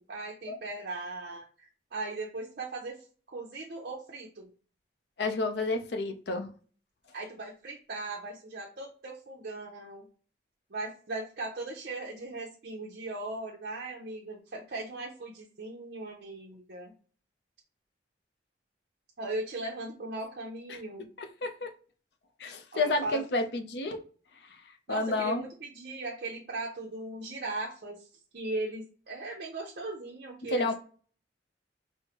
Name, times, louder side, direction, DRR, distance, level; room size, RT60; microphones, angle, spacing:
voice 1, 0.0-3.0 3.3-4.5 7.1-10.1 10.7-16.9 19.2-21.1 22.7-23.2 24.9-28.1 28.3-30.7, right 2 dB, 55° right, -1 dB, 0.6 m, -38 dB
voice 2, 5.2-6.5 20.7-20.8 21.4-21.7 22.4-24.0 24.9-25.4 30.5-30.7, left 2 dB, 65° left, 7 dB, 0.5 m, -30 dB
4.5 x 2.0 x 2.8 m, 0.40 s
head